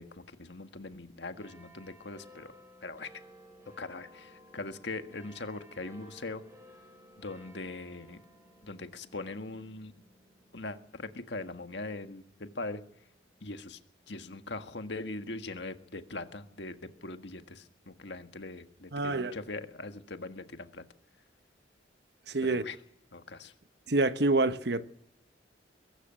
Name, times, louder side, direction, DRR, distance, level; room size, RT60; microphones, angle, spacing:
voice 1, 0.0-2.5 2.8-3.1 3.8-6.4 7.2-8.2 8.6-9.9 10.5-12.8 13.4-13.8 14.1-20.8 22.4-22.8 23.1-23.5, left 2 dB, 70° left, 1.7 m, -41 dB
sound 1, 1.4-14.2 14.9-15.0, equal, 15° right, 5.2 m, -57 dB
voice 2, 18.9-19.4 22.3-22.6 23.9-24.8, right 2 dB, 60° right, 1.1 m, -27 dB
23.0 x 13.0 x 9.0 m
head